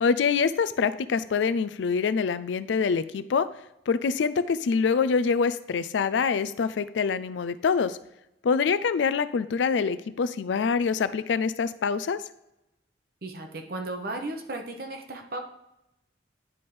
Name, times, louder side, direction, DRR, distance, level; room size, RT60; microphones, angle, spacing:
voice 1, 0.0-3.5 3.9-8.0 8.4-12.2, left 5 dB, 85° left, 14 dB, 0.4 m, -25 dB
voice 2, 13.2-15.4, right 2 dB, 55° right, 4 dB, 0.9 m, -35 dB
9.9 x 4.3 x 3.3 m, 0.86 s
head